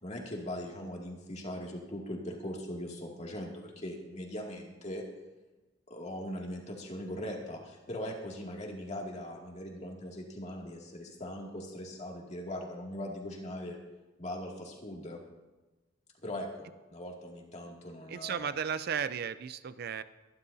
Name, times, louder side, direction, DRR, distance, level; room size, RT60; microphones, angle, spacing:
voice 1, 0.0-5.0 5.9-13.8 14.2-15.2 16.2-18.5, left 1 dB, 40° left, -1 dB, 2.3 m, -40 dB
voice 2, 18.1-20.0, right 7 dB, 55° right, 14 dB, 0.4 m, -34 dB
23.0 x 11.5 x 2.7 m, 1.2 s
head